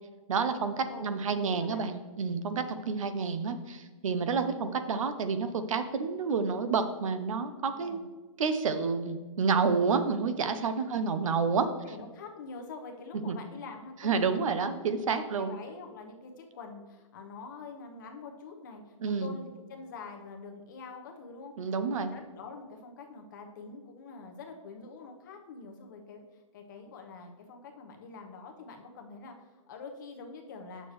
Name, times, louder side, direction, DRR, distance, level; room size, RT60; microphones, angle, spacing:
voice 1, 0.3-8.0 8.4-11.7 13.3-13.4 14.0-15.5 19.0-19.3 21.6-22.1, right 5 dB, 65° right, 10 dB, 0.8 m, -29 dB
voice 2, 1.4-1.8 2.9-3.2 7.7-8.0 10.8-11.1 11.8-14.5 15.4-30.9, left 4 dB, 35° left, 3 dB, 0.9 m, -46 dB
9.0 x 6.7 x 3.1 m, 1.3 s
hypercardioid pair, 175°, 18 cm